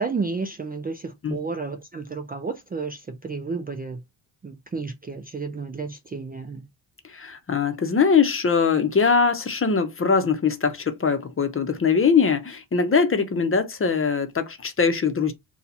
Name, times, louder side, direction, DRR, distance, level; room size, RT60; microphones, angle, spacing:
voice 1, 0.0-4.0 4.4-6.6, right 4 dB, 20° right, 0.4 m, -31 dB
voice 2, 7.0-15.3, left 5 dB, 30° left, 0.8 m, -22 dB
4.2 x 2.3 x 4.0 m
cardioid pair, 125°, 45 cm